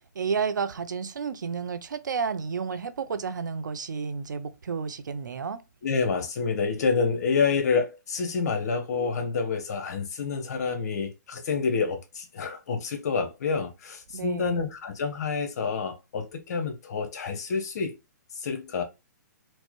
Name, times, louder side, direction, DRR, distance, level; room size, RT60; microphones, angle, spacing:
voice 1, 0.1-5.6 14.1-14.6, right 5 dB, 90° right, 0.5 m, -31 dB
voice 2, 5.8-17.9 18.4-18.8, left 5 dB, 60° left, 1.0 m, -28 dB
4.5 x 2.1 x 3.0 m
hypercardioid pair, 150°, 10 cm